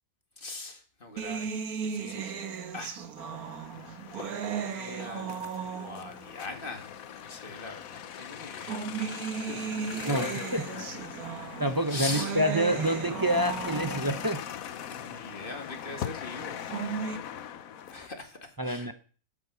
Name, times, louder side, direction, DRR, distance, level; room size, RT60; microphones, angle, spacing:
voice 1, 0.4-1.6 1.9-2.4 2.7-3.0 4.1-8.8 9.5-11.0 11.9-12.4 14.9-16.6 17.9-18.9, left 3 dB, 35° left, 5 dB, 2.2 m, -41 dB
sound 1, 1.2-6.3 7.2-7.3 8.4-14.3 16.4-17.2, right 7 dB, 75° right, 1.6 m, -36 dB
sound 2, 3.2-18.1, left 9 dB, 70° left, 1.2 m, -41 dB
voice 2, 10.0-10.6 11.6-14.4 18.6-18.9, equal, 25° right, 8 dB, 0.4 m, -27 dB
12.0 x 8.2 x 6.8 m, 0.42 s
omnidirectional pair, 1.6 m